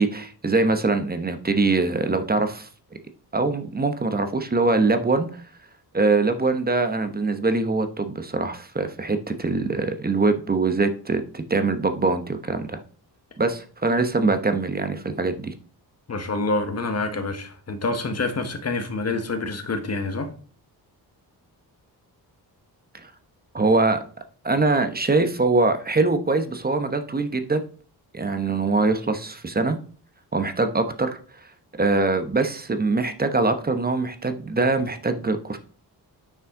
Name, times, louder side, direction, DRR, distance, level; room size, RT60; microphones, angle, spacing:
voice 1, 0.0-2.7 3.3-5.4 5.9-12.8 13.4-15.5 23.0-23.1 23.5-24.0 24.4-27.6 28.1-29.8 30.3-31.2 31.8-35.6, right 3 dB, 25° right, 1.0 m, -23 dB
voice 2, 16.1-20.3, left 3 dB, 40° left, 1.4 m, -27 dB
9.5 x 5.6 x 3.7 m
wide cardioid pair, 105°, 39 cm